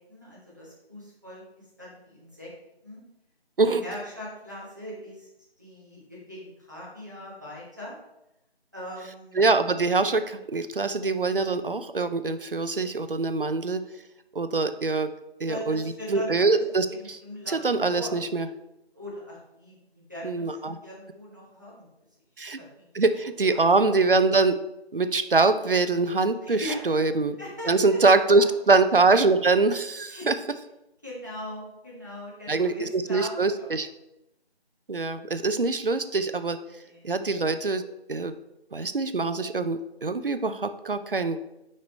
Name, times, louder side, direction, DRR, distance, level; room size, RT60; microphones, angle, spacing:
voice 1, 0.1-2.5 2.8-3.0 3.6-5.3 5.6-8.0 8.7-9.4 15.4-16.6 16.9-18.2 18.9-21.8 22.5-22.8 23.1-23.6 26.4-26.9 27.4-28.0 28.3-28.4 30.1-30.3 31.0-33.7 36.8-37.1, equal, 20° right, -6 dB, 0.9 m, -40 dB
voice 2, 9.3-13.8 14.3-15.1 15.4-17.2 17.5-18.5 20.2-20.8 22.4-22.6 22.9-24.6 24.9-27.4 27.7-30.3 32.5-33.9 34.9-36.6 37.0-37.8 38.1-38.3 38.7-41.4, right 3 dB, 55° right, 11 dB, 0.5 m, -24 dB
6.4 x 5.4 x 3.1 m, 0.88 s
figure-of-eight pair, 165°, 32 cm